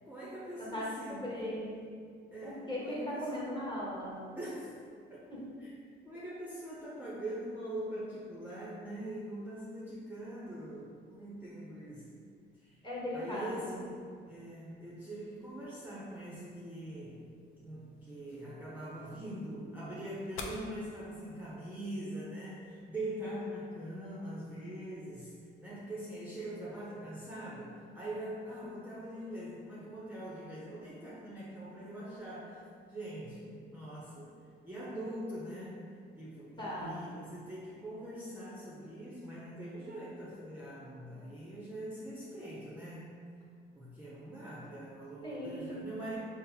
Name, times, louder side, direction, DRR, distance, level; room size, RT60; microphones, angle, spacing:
voice 1, 0.0-1.5 2.3-3.5 4.3-4.7 5.1-5.3 5.6-5.7 6.0-12.2 12.6-12.8 13.1-13.8 14.3-17.3 17.6-25.3 25.6-32.6 32.9-34.3 34.6-35.8 36.1-43.1 43.7-46.2, right 1 dB, 10° right, -7 dB, 0.6 m, -43 dB
voice 2, 0.6-1.8 2.4-4.3 5.3-5.4 12.8-13.8 36.6-37.0 45.2-45.9, equal, 25° left, -7 dB, 1.3 m, -38 dB
sound 1, 15.4-21.3, left 3 dB, 85° left, 0.4 m, -51 dB
4.1 x 2.0 x 3.9 m, 2.2 s
cardioid pair, 90°, 20 cm